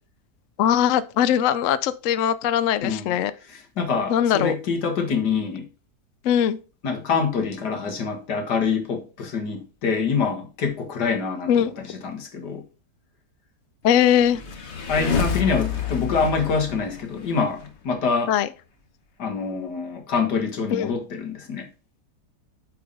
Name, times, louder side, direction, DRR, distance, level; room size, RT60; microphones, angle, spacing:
voice 1, 0.6-3.3 4.1-4.5 6.2-6.6 11.5-11.7 13.8-14.4 18.3-18.5 20.7-20.9, left 10 dB, 65° left, 0.8 m, -20 dB
voice 2, 2.8-3.2 3.5-5.7 6.8-12.6 14.9-18.3 19.2-21.7, left 5 dB, 90° left, 2.2 m, -25 dB
sound 1, 14.1-17.7, left 6 dB, 45° left, 1.3 m, -28 dB
8.5 x 4.6 x 4.0 m
omnidirectional pair, 1.7 m